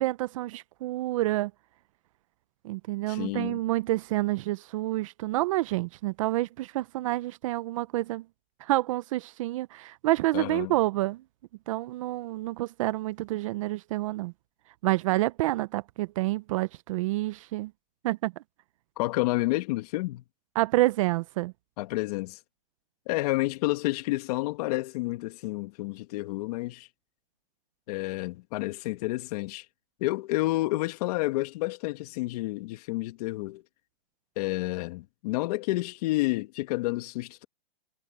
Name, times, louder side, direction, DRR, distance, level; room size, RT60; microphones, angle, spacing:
voice 1, 0.0-1.5 2.6-8.2 8.6-11.2 11.7-14.3 14.8-17.7 18.0-18.3 20.6-21.5, right 17 dB, 35° right, 0.6 m, -28 dB
voice 2, 3.1-3.6 10.3-10.7 19.0-20.2 21.8-22.4 23.1-26.9 27.9-29.7 30.0-33.6 34.4-37.4, left 20 dB, 40° left, 2.1 m, -30 dB
hypercardioid pair, 155°, 30 cm